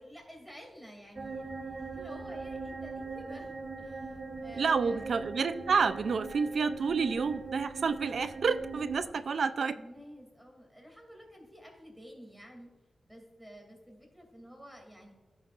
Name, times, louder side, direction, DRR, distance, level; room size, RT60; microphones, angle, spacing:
voice 1, 0.0-5.0 9.0-12.7 13.0-15.1, equal, 5° right, 0 dB, 2.5 m, -51 dB
sound 1, 1.2-9.1, right 3 dB, 35° right, 0.8 m, -41 dB
voice 2, 4.6-9.8, right 5 dB, 60° right, 12 dB, 0.4 m, -29 dB
14.5 x 6.2 x 2.4 m, 1.3 s
wide cardioid pair, 125°, 0 cm